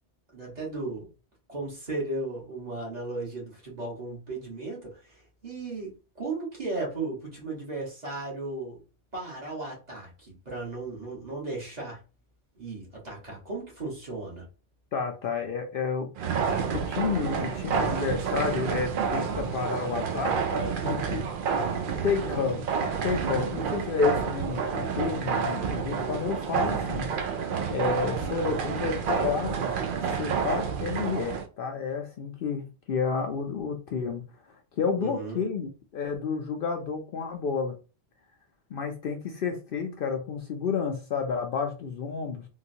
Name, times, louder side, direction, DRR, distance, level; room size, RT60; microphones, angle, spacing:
voice 1, 0.3-1.1 1.5-8.8 9.1-12.0 12.6-14.5 35.0-35.4, right 2 dB, 40° right, -4 dB, 1.4 m, -36 dB
voice 2, 14.9-16.1 16.7-21.3 22.0-22.6 23.0-27.1 27.7-29.6 30.2-34.2 34.5-37.7 38.7-42.4, left 5 dB, 60° left, 3 dB, 0.7 m, -30 dB
sound 1, 16.2-31.5, right 6 dB, 60° right, 0.6 m, -29 dB
3.7 x 2.3 x 2.7 m, 0.32 s
omnidirectional pair, 1.1 m